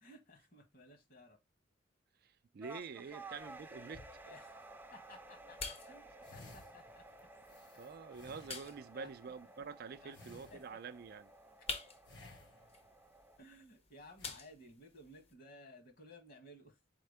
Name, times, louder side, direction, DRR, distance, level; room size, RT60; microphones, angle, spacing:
voice 1, 0.0-1.4 3.1-3.2 4.2-4.5 4.9-7.0 8.9-9.1 10.0-10.1 10.5-10.6 13.4-16.8, left 1 dB, 50° left, 1.6 m, -57 dB
voice 2, 2.2-4.0 7.8-11.3, right 5 dB, 55° right, 0.4 m, -47 dB
sound 1, 2.6-13.4, right 2 dB, 10° right, 0.5 m, -55 dB
sound 2, 3.3-15.3, left 4 dB, 35° left, 0.8 m, -51 dB
sound 3, 6.2-9.0 10.1-11.0 12.1-13.0 14.2-14.3, left 2 dB, 70° left, 1.5 m, -58 dB
4.4 x 3.6 x 3.3 m
head